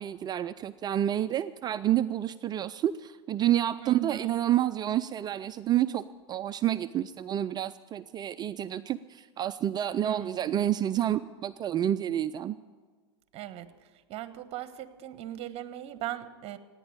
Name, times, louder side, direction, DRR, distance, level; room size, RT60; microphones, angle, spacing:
voice 1, 0.0-12.6, right 11 dB, 30° right, 12 dB, 0.4 m, -29 dB
voice 2, 3.8-4.3 9.9-10.6 13.3-13.7 14.1-16.6, right 12 dB, 45° right, 13 dB, 1.2 m, -39 dB
16.0 x 9.8 x 8.7 m, 1.5 s
hypercardioid pair, 105°, 15 cm